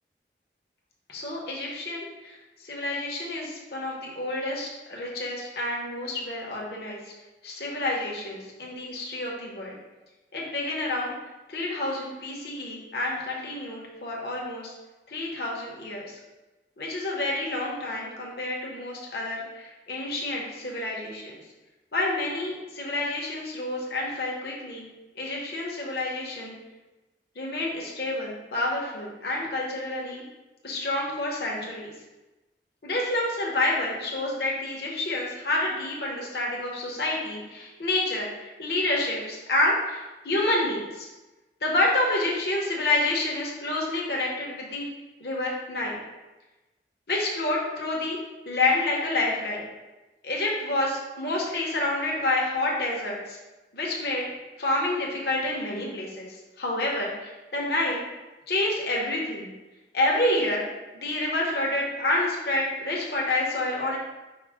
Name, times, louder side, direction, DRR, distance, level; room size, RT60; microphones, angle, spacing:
voice 1, 1.1-2.4 2.6-7.0 7.4-9.7 10.3-11.1 11.5-14.7 15.1-16.0 16.8-21.4 21.9-24.9 25.2-26.6 27.4-30.2 30.6-31.9 32.8-40.0 40.2-41.1 41.6-44.9 45.2-46.0 47.1-48.2 48.5-49.6 50.2-53.4 53.7-54.2 54.6-58.0 58.5-59.5 59.9-60.6 60.9-64.0, left 2 dB, 65° left, -3 dB, 0.9 m, -28 dB
4.7 x 2.1 x 4.7 m, 1.1 s
head